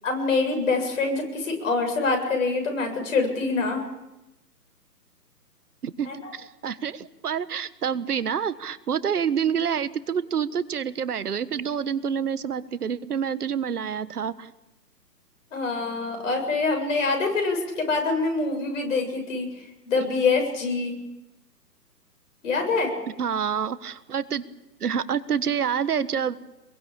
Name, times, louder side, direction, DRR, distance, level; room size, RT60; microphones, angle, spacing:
voice 1, 0.0-3.8 6.0-6.3 15.5-20.9 22.4-22.9, left 3 dB, 50° left, 3 dB, 7.5 m, -25 dB
voice 2, 5.8-14.5 23.2-24.4 24.8-26.3, right 7 dB, 70° right, 15 dB, 1.5 m, -27 dB
24.0 x 22.5 x 8.7 m, 0.98 s
figure-of-eight pair, 140°, 48 cm